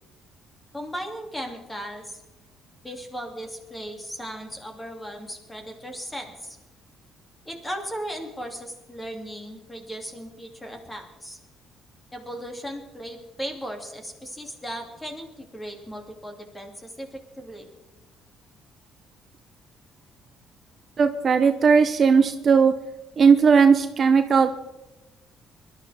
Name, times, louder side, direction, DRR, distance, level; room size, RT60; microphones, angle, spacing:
voice 1, 0.7-2.2 2.8-6.6 7.5-11.4 12.1-17.6, equal, 10° left, 3 dB, 2.5 m, -37 dB
voice 2, 21.0-22.7 23.2-24.6, right 5 dB, 40° right, 8 dB, 0.7 m, -17 dB
22.5 x 12.0 x 3.5 m, 1.0 s
cardioid pair, 120°, 0 cm